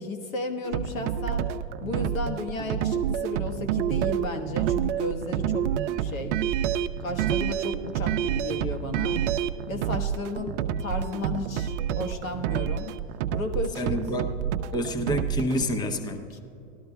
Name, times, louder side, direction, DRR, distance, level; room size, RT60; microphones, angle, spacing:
voice 1, 0.0-1.5 1.8-5.7 6.0-6.3 7.0-9.2 9.7-12.9 13.3-14.0 16.3-16.4, left 2 dB, 90° left, 5 dB, 1.4 m, -34 dB
sound 1, 0.6-15.6, right 9 dB, 60° right, 0.5 m, -28 dB
voice 2, 13.8-14.2 14.7-16.2, equal, 10° left, 6 dB, 0.6 m, -28 dB
17.5 x 13.0 x 2.3 m, 3.0 s
hypercardioid pair, 115°, 39 cm